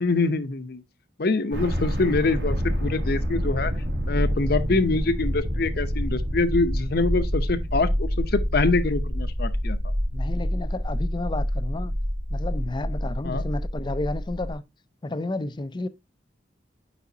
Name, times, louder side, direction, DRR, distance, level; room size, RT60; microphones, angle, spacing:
voice 1, 0.0-0.8 1.2-3.7 4.1-9.8 13.2-13.4, left 3 dB, 55° left, 0.7 m, -25 dB
sound 1, 1.5-14.5, equal, 65° right, 2.1 m, -27 dB
voice 2, 10.1-11.9 12.3-14.6 15.0-15.9, left 2 dB, 25° left, 0.4 m, -31 dB
8.3 x 5.0 x 2.7 m
head